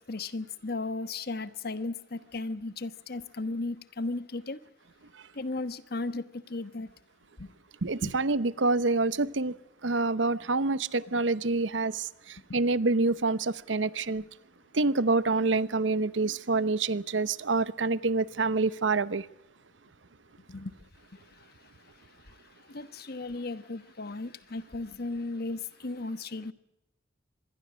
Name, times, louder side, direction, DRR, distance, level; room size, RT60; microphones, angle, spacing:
voice 1, 0.0-4.6 5.4-6.9 7.4-7.5 7.8-7.9 20.5-20.7 22.7-26.5, left 2 dB, 55° left, 1.2 m, -35 dB
voice 2, 7.8-9.5 9.8-14.2 14.7-19.3, right 3 dB, 80° right, 0.9 m, -27 dB
25.5 x 22.0 x 6.3 m
head